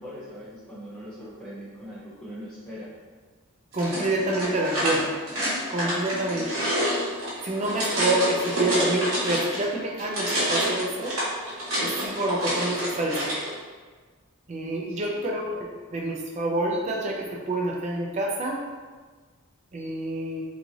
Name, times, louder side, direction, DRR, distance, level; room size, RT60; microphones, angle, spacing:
voice 1, 0.0-2.9 7.6-7.9 14.9-15.3, equal, 5° left, -13 dB, 1.0 m, -41 dB
voice 2, 3.7-5.1 5.7-6.6 7.4-11.2 11.8-13.3 14.5-18.6 19.7-20.4, right 1 dB, 30° right, 0 dB, 0.4 m, -27 dB
sound 1, 3.7-9.7 10.0-13.5, equal, 75° right, 1.3 m, -28 dB
3.1 x 2.4 x 3.8 m, 1.4 s
head